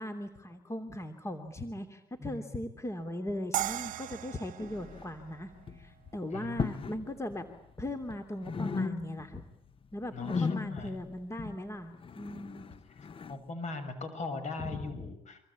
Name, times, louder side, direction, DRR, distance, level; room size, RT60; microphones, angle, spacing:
voice 1, 0.0-7.5 7.8-9.4 9.9-12.8 14.6-15.1, left 1 dB, 20° left, 8 dB, 3.0 m, -39 dB
voice 2, 2.2-2.6 6.3-6.9 10.1-11.0 13.3-15.4, left 3 dB, 55° left, 11 dB, 6.9 m, -40 dB
sound 1, 3.5-6.6, right 14 dB, 65° right, 1.1 m, -38 dB
sound 2, 4.6-5.3 5.6-5.9 6.5-7.0 7.3-8.2 8.4-9.4 9.7-13.4, left 5 dB, 35° left, 1.2 m, -37 dB
26.0 x 25.5 x 8.7 m, 0.78 s
supercardioid pair, 70°, 15 cm